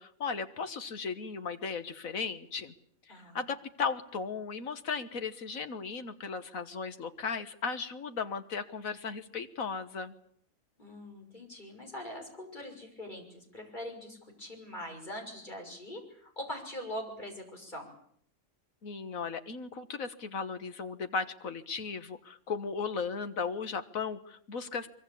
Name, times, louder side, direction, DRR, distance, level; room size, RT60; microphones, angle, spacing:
voice 1, 0.0-2.7 3.1-10.1 18.8-24.9, left 5 dB, 80° left, 10 dB, 1.9 m, -36 dB
voice 2, 3.1-3.4 10.8-17.9, left 1 dB, 35° left, 2 dB, 6.6 m, -42 dB
24.0 x 23.0 x 8.6 m, 0.66 s
omnidirectional pair, 1.4 m